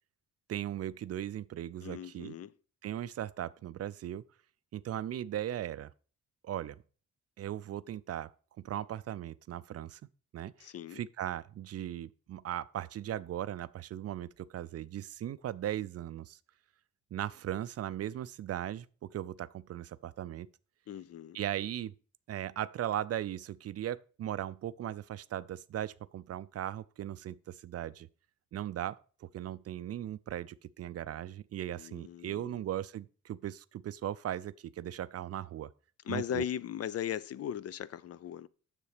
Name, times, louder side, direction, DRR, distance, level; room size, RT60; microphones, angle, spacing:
voice 1, 0.5-2.3 2.8-4.2 4.7-5.9 6.4-6.8 7.4-8.3 8.6-10.0 10.3-16.4 17.1-20.5 21.3-21.9 22.3-28.1 28.5-35.7 36.1-36.4, right 11 dB, 55° right, 0.4 m, -38 dB
voice 2, 1.8-2.5 10.6-11.0 20.9-21.4 31.8-32.6 36.1-38.5, left 9 dB, 55° left, 0.4 m, -38 dB
7.0 x 6.8 x 4.8 m
cardioid pair, 110°, 29 cm